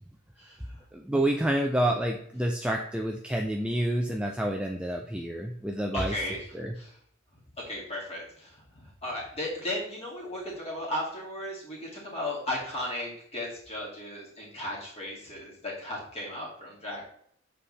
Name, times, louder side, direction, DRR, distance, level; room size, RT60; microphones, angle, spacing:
voice 1, 0.9-6.2 6.5-6.7, right 1 dB, 5° right, 2 dB, 0.4 m, -28 dB
voice 2, 5.9-6.5 6.8-6.9 7.7-8.6 9.0-17.1, left 1 dB, 30° left, -5 dB, 2.4 m, -35 dB
7.3 x 4.2 x 3.3 m, 0.65 s
head